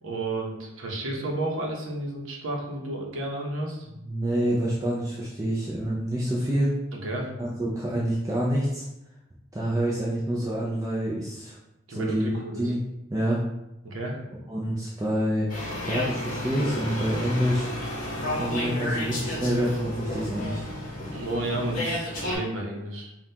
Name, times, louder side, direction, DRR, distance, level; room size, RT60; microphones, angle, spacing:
voice 1, 0.0-3.9 6.9-7.3 11.9-12.6 13.8-14.2 21.1-23.1, right 2 dB, 70° right, 0 dB, 0.8 m, -32 dB
voice 2, 4.0-6.7 7.4-8.9 9.5-11.6 11.9-12.8 13.1-13.4 14.5-17.7 18.4-20.7, right 1 dB, 15° right, -5 dB, 0.4 m, -27 dB
sound 1, 15.5-22.4, left 1 dB, 40° left, 1.1 m, -32 dB
5.4 x 2.4 x 2.8 m, 0.92 s
head